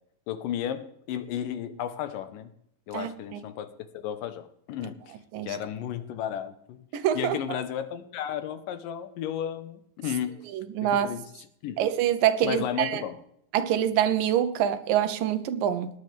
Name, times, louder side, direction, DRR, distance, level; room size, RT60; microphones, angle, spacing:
voice 1, 0.3-2.5 2.9-3.7 3.9-5.0 5.4-6.8 7.1-10.4 10.8-11.2 11.6-11.8 12.4-13.2, left 10 dB, 85° left, 2.6 m, -33 dB
voice 2, 2.9-3.4 5.3-5.6 6.9-7.4 10.5-11.1 11.8-13.0 13.5-15.9, right 10 dB, 85° right, 2.6 m, -25 dB
19.0 x 9.9 x 3.4 m
omnidirectional pair, 3.8 m